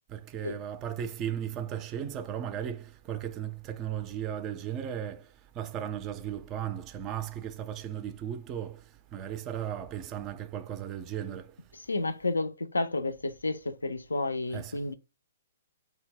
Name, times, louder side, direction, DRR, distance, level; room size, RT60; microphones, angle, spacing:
voice 1, 0.1-5.3 5.6-8.8 9.1-11.5 14.5-14.8, right 10 dB, 30° right, 0.3 m, -36 dB
voice 2, 11.9-14.9, left 2 dB, 85° left, 0.3 m, -31 dB
2.1 x 2.0 x 3.4 m
figure-of-eight pair, 125°, 0 cm